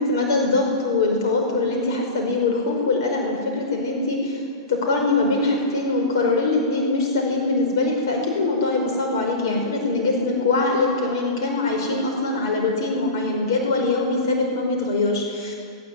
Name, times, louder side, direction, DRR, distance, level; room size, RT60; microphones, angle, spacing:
voice 1, 0.0-4.4 4.7-15.5, left 3 dB, 75° left, 1 dB, 5.0 m, -22 dB
23.5 x 20.5 x 8.5 m, 2.4 s
hypercardioid pair, 130°, 2 cm